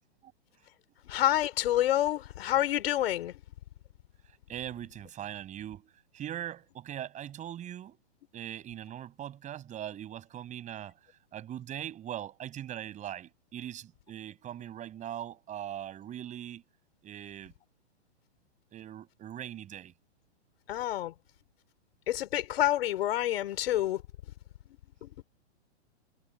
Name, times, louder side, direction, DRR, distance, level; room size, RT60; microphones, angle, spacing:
voice 1, 1.1-3.3 20.7-21.1 22.1-24.0 25.0-25.1, left 13 dB, 60° left, 4.8 m, -28 dB
voice 2, 4.5-8.0 8.3-11.0 11.3-16.6 17.0-17.5 18.7-19.9, right 11 dB, 20° right, 6.8 m, -41 dB
hypercardioid pair, 145°, 34 cm